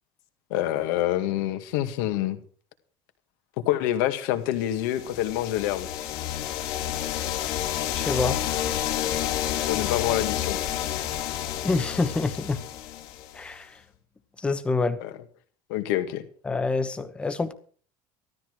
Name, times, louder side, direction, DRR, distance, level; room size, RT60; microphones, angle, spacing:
voice 1, 0.5-2.4 3.6-5.9 9.7-10.6 15.0-15.1 15.7-16.2, left 13 dB, 80° left, 7 dB, 2.1 m, -26 dB
sound 1, 4.8-13.5, left 12 dB, 55° left, 2.7 m, -30 dB
voice 2, 8.0-8.4 11.6-12.6 13.3-13.8 14.4-15.0 16.4-17.5, left 3 dB, 10° left, 10 dB, 1.1 m, -26 dB
14.5 x 13.5 x 4.8 m, 0.43 s
cardioid pair, 175°, 10 cm